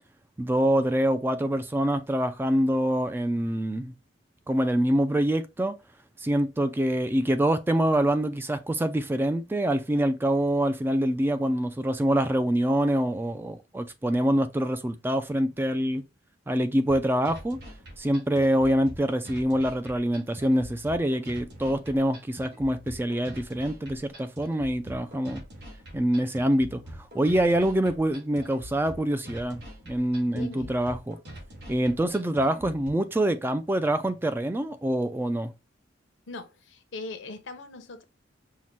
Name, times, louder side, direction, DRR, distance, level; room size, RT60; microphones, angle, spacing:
voice 1, 0.4-3.9 4.5-5.7 6.2-16.0 16.5-17.6 18.0-25.4 25.9-31.2 31.7-35.5, right 1 dB, 10° right, 0.3 m, -25 dB
sound 1, 16.9-32.9, equal, 60° right, 2.0 m, -44 dB
voice 2, 30.3-30.7 36.3-38.0, left 3 dB, 70° left, 0.8 m, -40 dB
5.5 x 2.2 x 3.1 m
head